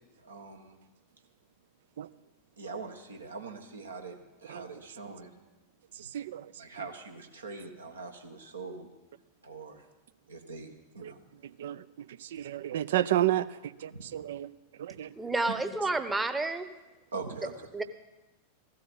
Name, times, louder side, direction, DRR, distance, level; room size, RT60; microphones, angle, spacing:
voice 1, 0.2-0.8 2.6-5.3 6.6-8.9 9.4-9.8 10.3-11.2 13.9-14.0 14.9-15.0 15.5-15.6 17.1-17.5, right 4 dB, 75° right, 4 dB, 1.6 m, -42 dB
voice 2, 12.3-13.5 13.8-14.5 14.8-15.1, right 13 dB, 60° right, 16 dB, 0.5 m, -29 dB
voice 3, 15.2-16.7 17.7-17.8, right 2 dB, 10° right, 10 dB, 0.9 m, -30 dB
15.5 x 13.0 x 5.5 m, 1.1 s
figure-of-eight pair, 90°, 0 cm